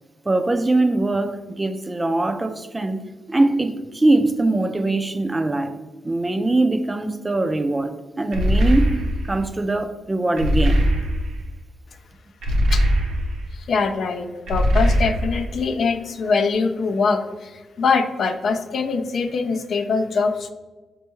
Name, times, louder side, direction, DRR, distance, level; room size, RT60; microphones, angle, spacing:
voice 1, 0.3-3.0 3.3-5.7 6.0-9.0 9.2-10.8, right 2 dB, 20° right, 8 dB, 0.3 m, -22 dB
sound 1, 8.3-9.4 10.4-11.5 12.4-13.5 14.5-15.6, equal, 80° right, 0.7 m, -20 dB
voice 2, 13.5-20.5, left 4 dB, 65° left, 6 dB, 0.3 m, -23 dB
4.3 x 2.2 x 3.0 m, 1.2 s
cardioid pair, 75°, 0 cm